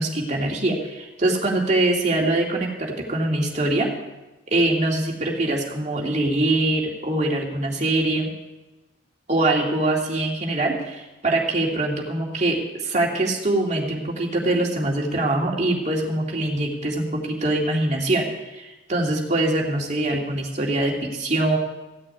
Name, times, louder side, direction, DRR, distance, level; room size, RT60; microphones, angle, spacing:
voice 1, 0.0-3.9 4.5-8.3 9.3-21.6, right 2 dB, 40° right, -1 dB, 2.6 m, -23 dB
15.5 x 6.7 x 9.1 m, 1.1 s
head